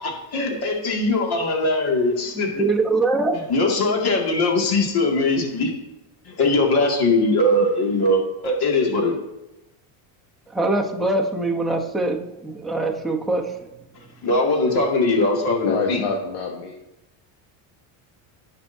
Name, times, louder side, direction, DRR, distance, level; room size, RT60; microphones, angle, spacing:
voice 1, 0.0-2.6 3.5-5.7 6.3-9.2 14.2-16.0, left 2 dB, 50° left, 0 dB, 2.3 m, -21 dB
voice 2, 2.3-3.3 10.5-13.6, right 2 dB, ahead, -2 dB, 0.9 m, -23 dB
voice 3, 15.5-16.7, left 4 dB, 75° left, 0 dB, 1.4 m, -27 dB
17.0 x 5.9 x 2.7 m, 0.94 s
cardioid pair, 140°, 50 cm